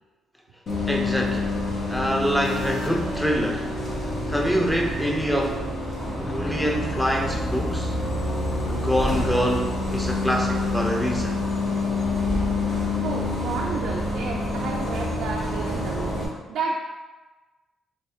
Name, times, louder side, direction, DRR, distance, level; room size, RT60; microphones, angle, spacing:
Bus, 0.7-16.3, left 2 dB, 60° left, 1.0 m, -27 dB
voice 1, 0.9-1.5 1.9-3.7 4.3-5.6 6.2-7.9 8.7-11.4, equal, 5° left, 0 dB, 0.7 m, -25 dB
sound 1, 2.4-4.3, left 3 dB, 80° left, 1.1 m, -39 dB
voice 2, 13.0-16.2 16.5-16.8, right 4 dB, 75° right, 0 dB, 0.3 m, -31 dB
3.5 x 3.2 x 2.8 m, 1.2 s
supercardioid pair, 50°, 0 cm